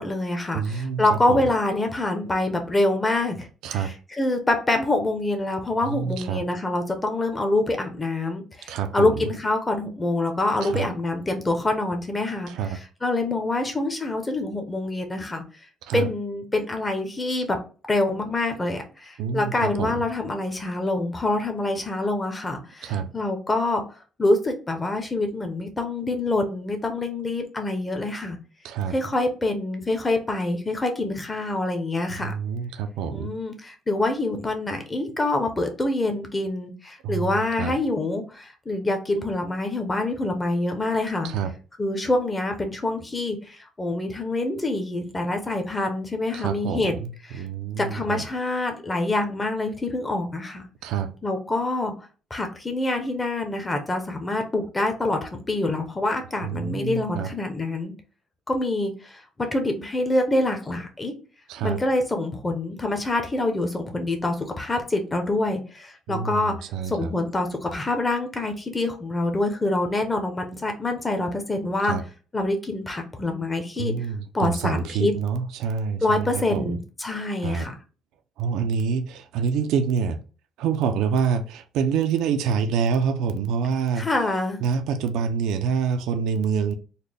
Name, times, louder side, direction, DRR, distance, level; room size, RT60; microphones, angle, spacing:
voice 1, 0.0-15.4 15.9-17.6 17.9-23.8 24.2-28.4 28.9-32.3 33.1-41.3 41.8-46.9 47.2-47.4 47.8-50.6 51.2-51.9 52.3-57.9 58.5-59.2 59.5-61.1 61.6-66.5 66.9-72.0 72.3-73.9 74.3-75.1 76.0-77.7 83.9-84.6, left 2 dB, 15° left, 0.7 m, -26 dB
voice 2, 0.5-1.0 1.3-1.4 3.6-3.9 5.9-6.4 8.7-9.1 10.6-10.9 12.5-12.8 15.8-16.1 19.2-19.9 22.8-23.1 28.6-28.9 32.2-33.3 37.0-37.3 37.6-37.7 41.2-41.5 46.3-47.1 47.3-48.2 50.8-51.1 56.4-57.3 61.5-61.8 66.1-67.1 71.8-72.0 73.8-76.8 77.4-77.7 78.4-80.2 80.6-84.1 84.6-86.7, right 6 dB, 80° right, 0.5 m, -26 dB
4.0 x 2.2 x 3.4 m
cardioid pair, 130°, 0 cm